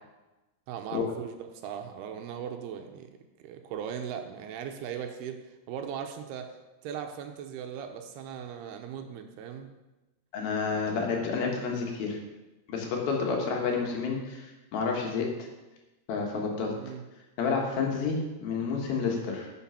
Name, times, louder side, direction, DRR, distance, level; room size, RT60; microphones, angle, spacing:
voice 1, 0.7-3.1 3.4-5.4 5.7-6.5 6.8-9.7 10.8-11.1 16.8-17.0, right 8 dB, 80° right, 6 dB, 2.8 m, -38 dB
voice 2, 10.3-12.2 12.7-15.3 16.1-16.7 17.4-19.5, left 5 dB, 70° left, 0 dB, 3.2 m, -30 dB
10.0 x 6.8 x 5.7 m, 1.1 s
omnidirectional pair, 4.6 m